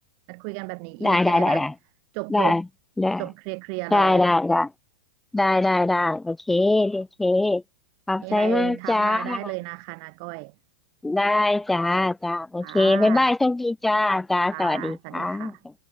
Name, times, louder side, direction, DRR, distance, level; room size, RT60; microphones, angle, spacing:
voice 1, 0.3-1.6 2.1-2.6 3.2-4.3 8.2-10.5 12.6-13.3 14.5-15.6, right 40 dB or more, 35° right, 1.8 m, -34 dB
voice 2, 1.0-1.7 2.3-2.6 3.0-3.2 3.9-4.7 5.3-7.6 8.1-9.5 11.0-15.5, left 2 dB, 5° left, 0.3 m, -22 dB
supercardioid pair, 170°, 5 cm